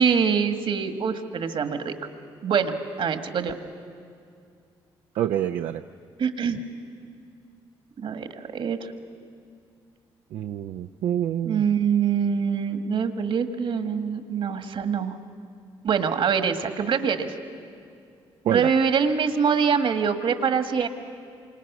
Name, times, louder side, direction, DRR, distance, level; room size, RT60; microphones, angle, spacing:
voice 1, 0.0-1.9 2.4-3.5 6.2-6.6 8.0-8.9 11.4-15.2 15.8-17.3 18.4-20.9, right 6 dB, 60° right, 8 dB, 1.6 m, -24 dB
voice 2, 5.1-5.8 10.3-11.6 18.5-18.7, right 11 dB, 75° right, 6 dB, 0.5 m, -27 dB
27.5 x 25.5 x 6.1 m, 2.4 s
supercardioid pair, 70°, 10 cm